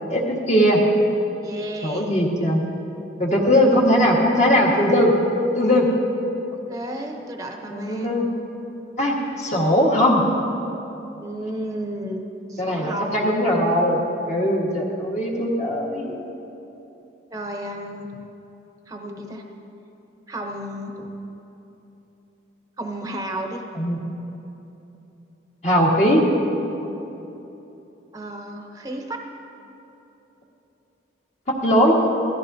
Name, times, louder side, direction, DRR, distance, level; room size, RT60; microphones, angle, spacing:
voice 1, 0.1-0.8 1.8-2.6 3.2-5.1 5.5-5.8 7.7-8.3 9.0-10.2 12.6-14.0 14.3-16.1 23.7-24.1 25.6-26.2 31.5-32.0, equal, 35° left, -2 dB, 1.6 m, -19 dB
voice 2, 1.4-2.1 6.5-8.2 11.2-13.4 17.3-18.2 18.9-19.4 20.3-21.1 22.8-23.6 28.1-29.2, right 1 dB, 20° right, 2 dB, 0.8 m, -33 dB
17.0 x 14.0 x 2.7 m, 3.0 s
head